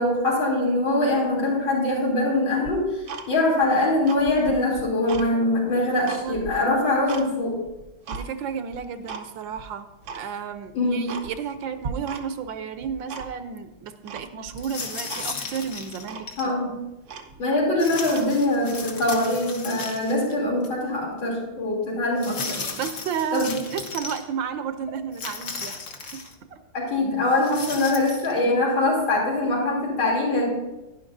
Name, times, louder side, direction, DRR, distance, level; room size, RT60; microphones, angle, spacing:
voice 1, 0.0-7.6 10.7-11.1 16.4-16.7 17.4-22.6 23.3-23.5 26.7-30.5, left 2 dB, 85° left, -4 dB, 3.8 m, -23 dB
Tick-tock, 2.6-3.6 4.0-5.3 5.7-7.3 7.7-8.3 8.7-9.3 9.5-9.6 10.0-10.3 10.7-10.8 11.1-11.6 11.8-12.5 12.7-13.5 14.1-14.6 15.1-15.3 15.6-15.7 16.1-16.3 16.8-16.9 17.0-18.5 19.0-19.3, right 5 dB, 60° right, 0.8 m, -37 dB
voice 2, 8.1-9.9 10.1-16.3 22.7-26.6, right 7 dB, 75° right, 10 dB, 1.4 m, -32 dB
styrofoam long, 14.6-16.5 17.8-20.3 20.6-20.7 22.2-24.2 25.1-26.3 27.3-28.3, left 4 dB, 50° left, 1.1 m, -35 dB
11.5 x 10.5 x 2.6 m, 0.99 s
omnidirectional pair, 2.1 m